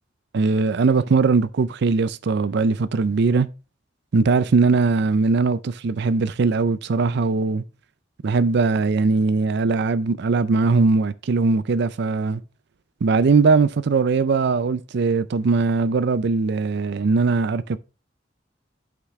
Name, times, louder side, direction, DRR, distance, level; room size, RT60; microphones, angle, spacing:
voice 1, 0.3-3.5 4.1-7.6 8.2-12.4 13.0-17.8, right 4 dB, 60° right, 0.4 m, -20 dB
8.0 x 5.9 x 3.1 m
head